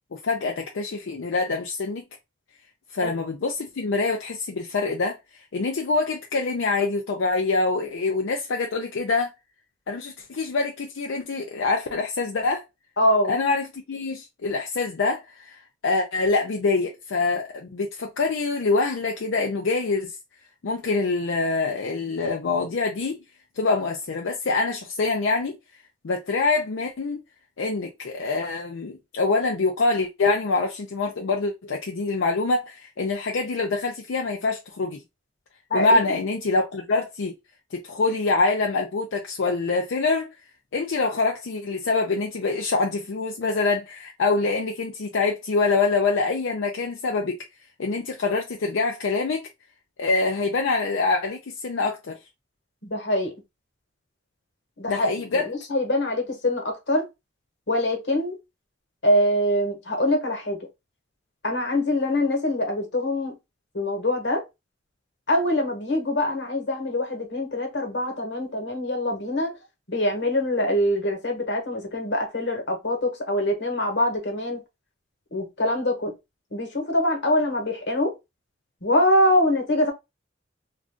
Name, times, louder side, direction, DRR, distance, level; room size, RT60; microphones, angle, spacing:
voice 1, 0.1-2.0 2.9-5.2 5.5-9.3 9.9-12.6 13.3-20.1 20.6-23.2 23.6-25.6 26.0-27.2 27.6-35.0 35.7-37.3 37.7-40.3 40.7-47.4 47.8-49.5 50.0-52.2 54.9-55.4, left 3 dB, 85° left, 0.5 m, -25 dB
voice 2, 13.0-13.4 35.7-36.0 52.8-53.3 54.8-57.1 57.7-58.4 59.0-60.6 61.4-63.4 63.7-64.4 65.3-69.5 69.9-74.6 75.3-76.1 76.5-78.1 78.8-79.9, left 1 dB, 65° left, 1.2 m, -24 dB
2.5 x 2.5 x 3.5 m
head